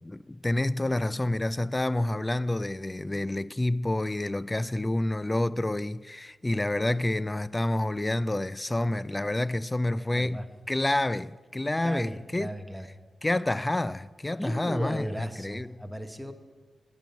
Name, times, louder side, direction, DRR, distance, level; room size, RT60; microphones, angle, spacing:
voice 1, 0.0-12.5 13.2-15.8, left 1 dB, 20° left, 0.4 m, -28 dB
voice 2, 10.0-10.5 11.8-12.9 14.4-16.3, equal, 5° right, 1.2 m, -37 dB
9.0 x 8.8 x 7.0 m
cardioid pair, 50°, 0 cm